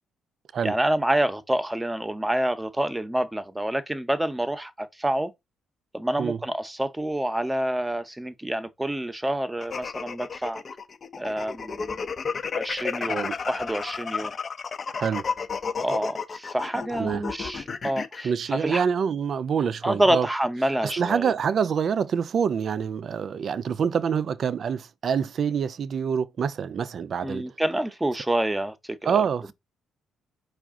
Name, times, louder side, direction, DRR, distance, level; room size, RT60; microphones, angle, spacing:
voice 1, 0.6-5.3 5.9-10.6 11.2-12.0 12.5-14.3 15.8-18.8 19.8-21.3 27.2-28.7 29.0-29.2, right 1 dB, 10° right, 0.7 m, -27 dB
sound 1, 9.6-18.2, left 5 dB, 45° left, 0.6 m, -32 dB
voice 2, 13.0-13.3 15.0-15.3 17.0-17.2 18.2-20.3 20.8-27.5 29.0-29.5, right 7 dB, 55° right, 0.4 m, -26 dB
4.7 x 2.4 x 3.6 m
supercardioid pair, 65°, 0 cm